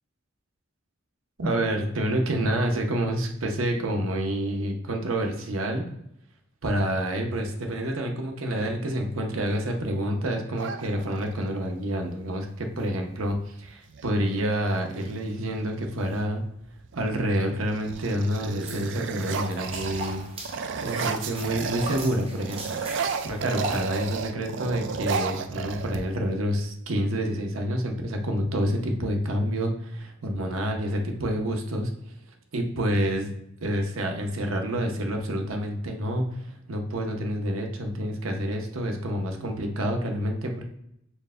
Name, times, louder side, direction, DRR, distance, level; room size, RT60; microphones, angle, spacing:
voice 1, 1.4-5.8 6.6-16.4 16.9-20.2 20.8-22.8 23.2-31.9 32.5-33.3 33.6-40.6, equal, 85° right, 3 dB, 0.8 m, -28 dB
sound 1, 10.6-11.5 13.2-13.3 13.6-14.1 14.7-16.2 16.8-17.2 17.6-22.2 22.4-26.4, right 5 dB, 60° right, 0.3 m, -33 dB
sound 2, 18.6-24.0, right 2 dB, 30° right, 0.7 m, -39 dB
4.4 x 2.1 x 3.7 m, 0.77 s
head